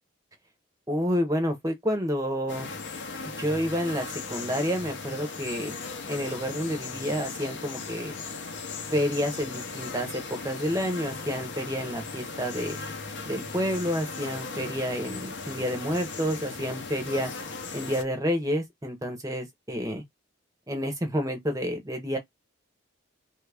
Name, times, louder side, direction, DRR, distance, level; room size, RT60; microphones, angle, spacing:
voice 1, 0.9-2.7 3.4-5.7 6.1-8.2 8.9-12.8 13.2-17.3 17.7-20.0 20.7-22.2, equal, 15° right, 0.7 m, -29 dB
sound 1, 2.5-18.0, left 4 dB, 60° left, 0.7 m, -37 dB
3.1 x 2.4 x 3.3 m
head